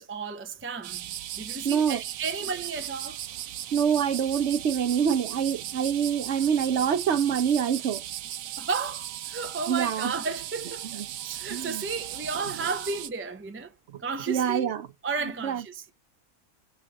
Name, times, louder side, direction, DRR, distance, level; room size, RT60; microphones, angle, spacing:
voice 1, 0.0-3.2 8.6-10.9 11.2-13.7 14.0-14.7 15.0-15.9, right 5 dB, 15° right, 0.4 m, -33 dB
sound 1, 0.8-13.1, right 12 dB, 90° right, 1.0 m, -37 dB
voice 2, 1.6-2.0 2.4-2.5 3.7-8.0 9.7-10.1 10.6-11.1 11.5-11.9 12.4-12.7 14.3-14.9 15.2-15.6, right 8 dB, 60° right, 1.1 m, -26 dB
6.2 x 3.8 x 6.1 m
omnidirectional pair, 1.4 m